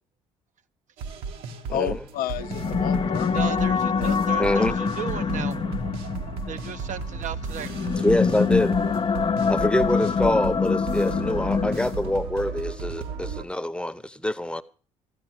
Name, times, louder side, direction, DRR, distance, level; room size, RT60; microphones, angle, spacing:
sound 1, 1.0-13.4, right 5 dB, 65° right, 2.1 m, -35 dB
voice 1, 1.7-4.5, left 13 dB, 60° left, 0.6 m, -33 dB
sound 2, 2.4-12.2, left 6 dB, 30° left, 0.8 m, -25 dB
voice 2, 3.2-5.5 6.5-7.7, right 7 dB, 50° right, 1.2 m, -35 dB
voice 3, 4.4-4.8 8.0-8.7 9.5-14.6, left 1 dB, 5° left, 1.2 m, -25 dB
15.0 x 11.0 x 6.3 m
hypercardioid pair, 50°, 17 cm